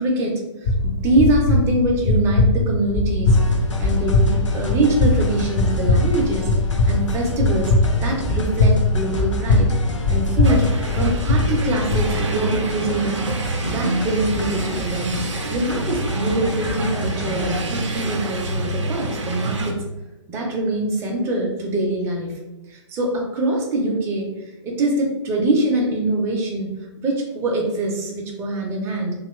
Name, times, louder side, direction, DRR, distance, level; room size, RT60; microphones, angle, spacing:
voice 1, 0.0-3.4 3.8-6.5 6.8-7.7 8.0-9.7 10.1-10.7 10.9-13.2 13.6-15.1 15.5-19.8 20.3-22.3 22.7-24.3 24.6-26.7 27.0-29.1, right 2 dB, 15° right, 0 dB, 0.5 m, -23 dB
sound 1, 0.6-12.1, left 2 dB, 35° left, 0.6 m, -20 dB
sound 2, 3.3-17.7, left 1 dB, 75° left, 0.6 m, -31 dB
sound 3, 10.4-19.7, right 2 dB, 70° right, 0.5 m, -27 dB
2.8 x 2.4 x 3.0 m, 1.0 s
figure-of-eight pair, 120°, 16 cm